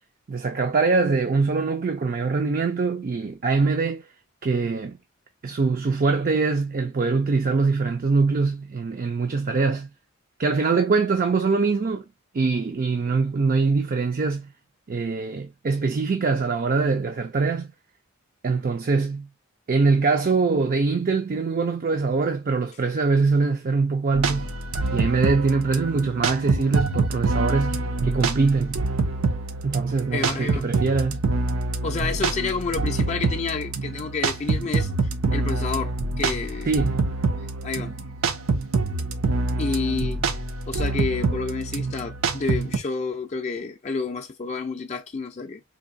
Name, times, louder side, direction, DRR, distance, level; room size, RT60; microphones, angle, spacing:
voice 1, 0.3-4.0 4.4-5.0 5.4-9.9 10.4-12.0 12.3-14.5 14.9-17.7 18.4-19.3 19.7-24.5 24.9-28.8 29.6-31.2 36.7-37.1, right 4 dB, 40° right, 0.4 m, -23 dB
sound 1, 24.1-42.8, right 3 dB, 80° right, 0.6 m, -26 dB
voice 2, 30.1-30.7 31.8-34.9 35.3-36.7 37.6-37.9 39.6-45.6, left 4 dB, 30° left, 0.4 m, -29 dB
4.0 x 2.6 x 2.6 m
head